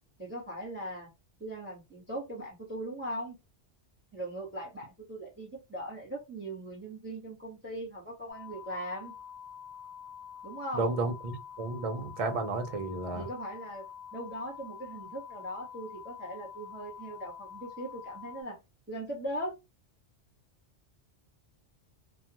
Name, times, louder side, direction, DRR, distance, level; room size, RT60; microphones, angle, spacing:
voice 1, 0.2-1.1 1.4-3.4 4.1-9.1 10.4-10.9 13.1-13.8 14.1-18.6 18.9-19.5, right 1 dB, 10° right, 1.0 m, -39 dB
sound 1, 8.3-18.4, left 8 dB, 30° left, 0.5 m, -47 dB
voice 2, 10.7-13.3, right 3 dB, 45° right, 0.5 m, -32 dB
2.3 x 2.2 x 2.8 m
omnidirectional pair, 1.1 m